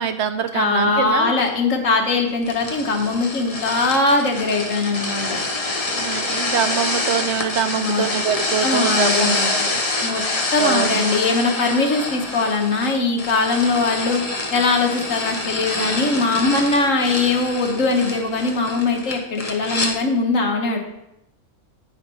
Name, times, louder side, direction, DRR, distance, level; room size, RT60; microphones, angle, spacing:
voice 1, 0.0-1.3 5.9-9.8 10.6-11.1, right 7 dB, 60° right, 9 dB, 1.0 m, -24 dB
voice 2, 0.5-5.4 7.8-8.1 8.6-9.7 10.0-10.2 10.5-14.2 14.5-20.8, left 3 dB, 70° left, 2 dB, 1.6 m, -21 dB
sound 1, 2.4-19.9, left 2 dB, 30° left, 1.1 m, -26 dB
9.0 x 5.0 x 5.5 m, 0.84 s
omnidirectional pair, 1.4 m